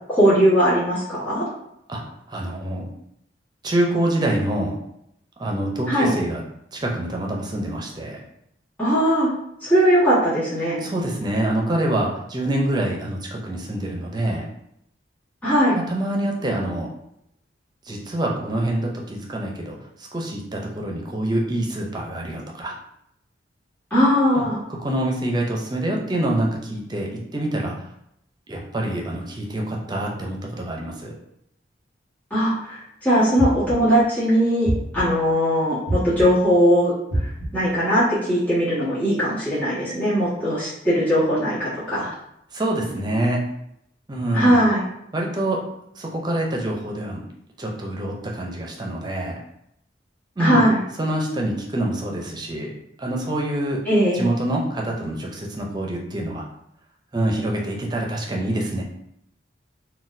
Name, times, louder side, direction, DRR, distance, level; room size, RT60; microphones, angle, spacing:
voice 1, 0.1-1.4 5.9-6.1 8.8-9.3 9.6-10.9 15.4-15.8 23.9-24.6 32.3-36.9 37.2-42.1 44.3-44.9 50.4-50.8 53.8-54.2, equal, 10° left, -12 dB, 1.4 m, -19 dB
voice 2, 2.3-2.9 3.6-4.7 5.4-6.4 6.7-8.2 10.8-14.4 15.7-16.9 17.9-19.8 20.1-22.7 24.3-24.4 24.8-27.8 28.5-31.1 42.5-43.4 44.1-44.6 45.1-45.6 46.0-47.2 47.6-49.4 50.4-50.6 51.0-52.7 53.0-53.8 54.1-56.4 57.1-58.8, right 1 dB, 20° right, -1 dB, 0.5 m, -26 dB
sound 1, 33.4-34.0 34.6-35.3 35.9-36.5 37.1-37.8, right 1 dB, 85° left, 1.2 m, -27 dB
3.9 x 2.2 x 2.6 m, 0.76 s
head